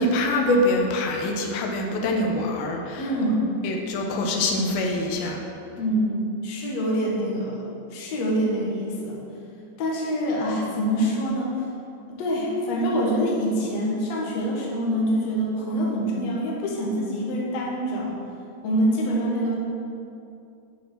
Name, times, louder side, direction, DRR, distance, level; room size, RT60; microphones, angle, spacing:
voice 1, 0.0-3.0 3.6-5.4, left 1 dB, 85° left, 2 dB, 2.8 m, -24 dB
voice 2, 3.0-3.5 5.8-7.6 7.9-9.2 9.8-11.5 12.1-18.2 18.6-19.6, equal, 55° left, -3 dB, 2.4 m, -25 dB
11.0 x 5.3 x 6.2 m, 2.7 s
omnidirectional pair, 4.2 m